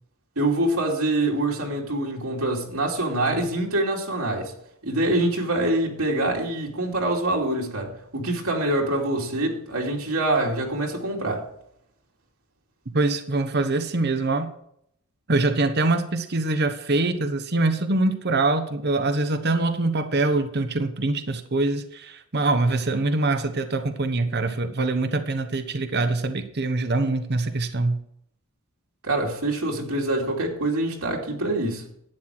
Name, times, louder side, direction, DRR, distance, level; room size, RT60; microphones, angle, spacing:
voice 1, 0.4-4.5 4.8-11.4 29.0-31.8, right 1 dB, 80° right, -2 dB, 2.7 m, -25 dB
voice 2, 12.9-14.5 15.3-28.0, right 2 dB, 50° right, 9 dB, 1.0 m, -24 dB
12.0 x 9.4 x 4.6 m, 0.71 s
head